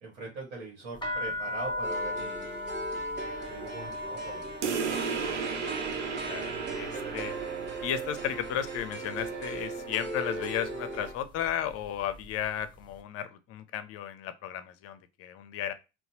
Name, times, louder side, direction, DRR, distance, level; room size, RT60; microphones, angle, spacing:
voice 1, 0.0-2.4 3.0-4.4, right 3 dB, 65° right, -1 dB, 1.2 m, -42 dB
sound 1, 1.0-8.9 9.2-9.8 10.4-10.7 11.0-12.5, left 1 dB, 15° left, 0.8 m, -38 dB
sound 2, 1.8-11.1, right 3 dB, 30° right, 1.3 m, -39 dB
sound 3, 4.6-9.7, right 6 dB, 85° right, 0.5 m, -35 dB
voice 2, 6.0-7.3 7.8-15.7, left 10 dB, 45° left, 12 dB, 0.6 m, -34 dB
4.0 x 2.1 x 2.8 m, 0.28 s
figure-of-eight pair, 60°, 34 cm